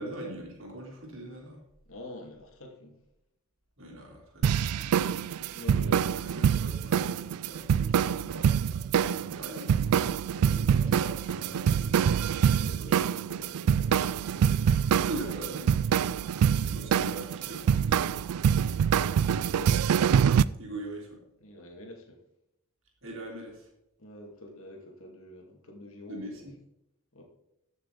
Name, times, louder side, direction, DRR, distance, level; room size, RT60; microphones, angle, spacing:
voice 1, 0.0-1.6 3.8-5.1 5.7-13.0 15.0-15.7 16.7-18.4 20.6-21.2 23.0-23.7 26.1-26.5, right 1 dB, 60° right, -1 dB, 3.5 m, -42 dB
voice 2, 1.9-3.0 5.5-6.2 10.3-10.8 12.5-15.4 16.6-17.0 19.5-19.9 21.4-22.2 24.0-26.5 27.1-27.2, left 1 dB, 65° left, 1 dB, 2.2 m, -47 dB
sound 1, 4.4-20.4, right 8 dB, 85° right, 0.3 m, -25 dB
14.0 x 6.6 x 3.9 m, 0.83 s
head